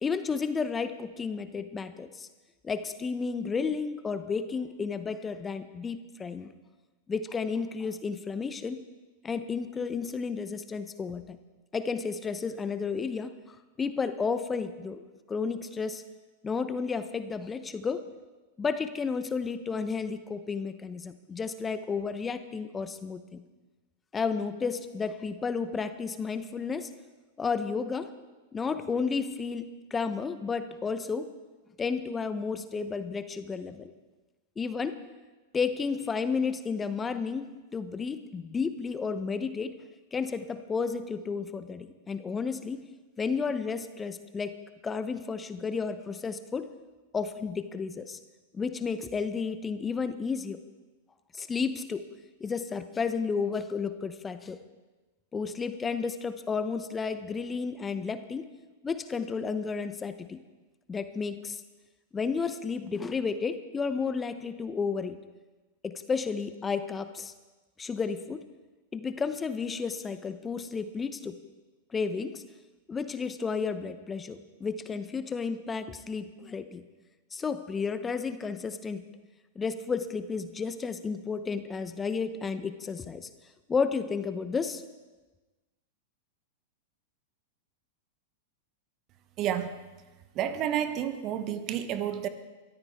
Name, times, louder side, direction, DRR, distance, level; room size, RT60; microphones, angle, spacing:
voice 1, 0.0-2.3 2.6-6.5 7.1-8.8 9.2-11.4 11.7-15.0 15.3-16.0 16.4-18.0 18.6-23.4 24.1-26.9 27.4-28.1 28.5-31.3 31.8-33.9 34.6-35.0 35.5-37.4 37.7-39.8 40.1-42.8 43.2-44.5 44.8-46.7 47.1-48.2 48.5-50.6 51.3-52.0 52.4-54.6 55.3-58.5 58.8-60.4 60.9-61.6 62.1-65.2 65.8-67.3 67.8-68.4 68.9-71.4 71.9-72.4 72.9-76.8 77.3-79.0 79.6-83.3 83.7-84.8, left 5 dB, 20° left, 11 dB, 0.8 m, -32 dB
voice 2, 89.4-89.8 90.3-92.3, right 10 dB, 40° right, 11 dB, 1.1 m, -30 dB
22.5 x 14.0 x 3.6 m, 1.2 s
figure-of-eight pair, 95°, 0 cm